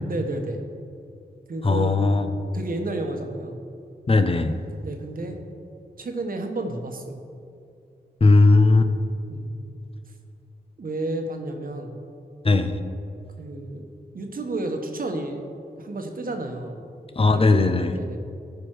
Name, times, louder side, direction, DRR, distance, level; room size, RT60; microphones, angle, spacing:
voice 1, 0.1-0.6 1.5-1.9 2.5-3.6 4.8-5.4 6.0-7.2 9.3-9.5 10.8-12.0 13.4-13.8 14.1-15.4 15.8-16.8 17.3-17.6 17.9-18.2, right 2 dB, 55° right, 4 dB, 1.2 m, -31 dB
voice 2, 1.6-2.3 4.1-4.6 8.2-8.9 12.4-12.8 17.2-18.0, left 3 dB, 35° left, 8 dB, 0.7 m, -18 dB
13.5 x 5.3 x 4.8 m, 2.4 s
cardioid pair, 70°, 17 cm